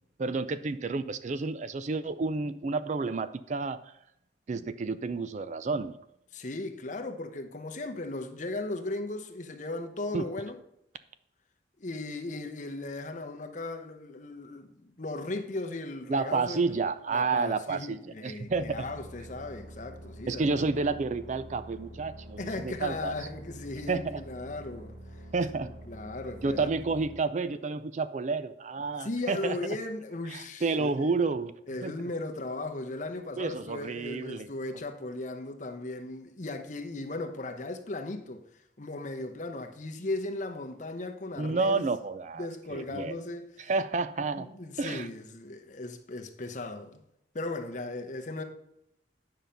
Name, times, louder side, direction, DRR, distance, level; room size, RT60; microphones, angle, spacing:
voice 1, 0.2-3.8 4.5-5.9 10.1-10.2 16.1-18.0 18.2-18.8 20.3-23.1 23.9-24.2 25.3-25.7 26.4-29.6 30.3-31.5 31.8-31.9 33.4-34.5 41.4-43.2 43.7-44.5 44.8-45.1, right 4 dB, 40° right, 0.4 m, -30 dB
voice 2, 6.3-10.6 11.8-16.8 17.1-20.7 22.4-24.9 25.5-26.7 29.0-31.1 31.7-38.4 38.8-41.9 42.4-43.7 44.3-47.0 47.3-48.4, left 2 dB, 45° left, 0.9 m, -37 dB
sound 1, 18.5-27.2, right 1 dB, 60° right, 1.6 m, -46 dB
9.2 x 5.7 x 5.2 m
head